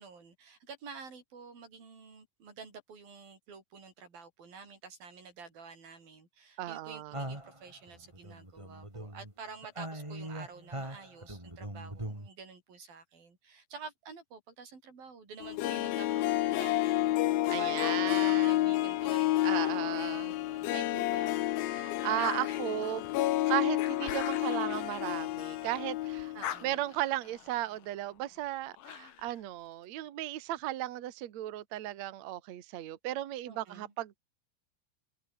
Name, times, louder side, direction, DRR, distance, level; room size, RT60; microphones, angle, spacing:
voice 1, 0.0-21.4 26.3-26.8 33.5-33.9, right 5 dB, 50° right, 7.4 m, -49 dB
voice 2, 6.6-7.2 17.5-18.7 19.4-20.4 21.7-23.1 23.4-26.3 26.6-34.2, right 14 dB, 85° right, 1.5 m, -36 dB
sound 1, 7.1-9.3 9.6-12.3, right 1 dB, 5° right, 3.6 m, -41 dB
Harp, 15.4-26.4 26.7-26.8, left 15 dB, 75° left, 2.2 m, -30 dB
sound 2, 17.8-20.5 21.0-25.8 26.1-29.4, left 10 dB, 55° left, 2.8 m, -45 dB
omnidirectional pair, 5.6 m